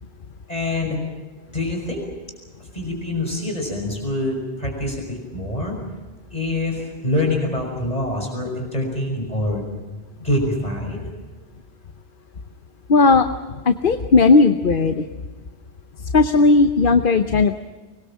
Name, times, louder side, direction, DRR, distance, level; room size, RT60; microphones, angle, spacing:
voice 1, 0.5-1.0 1.5-2.0 2.7-5.8 6.3-9.6 10.2-11.0, left 1 dB, 40° left, 1 dB, 5.8 m, -25 dB
voice 2, 12.9-13.3 13.7-15.1 16.1-17.5, left 3 dB, 55° left, 8 dB, 1.1 m, -15 dB
25.0 x 21.0 x 7.3 m, 1.3 s
omnidirectional pair, 1.1 m